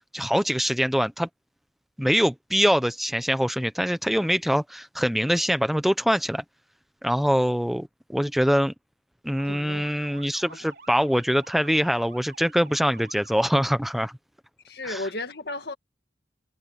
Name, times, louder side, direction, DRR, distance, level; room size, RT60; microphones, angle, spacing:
voice 1, 0.1-1.3 2.0-6.4 7.0-8.7 9.2-14.1 14.8-15.1, equal, ahead, 0.6 m, -24 dB
Motor vehicle (road) / Siren, 9.3-13.7, right 4 dB, 65° right, 4.7 m, -49 dB
voice 2, 9.5-9.9 10.5-10.6 14.6-15.7, left 2 dB, 65° left, 1.9 m, -34 dB
head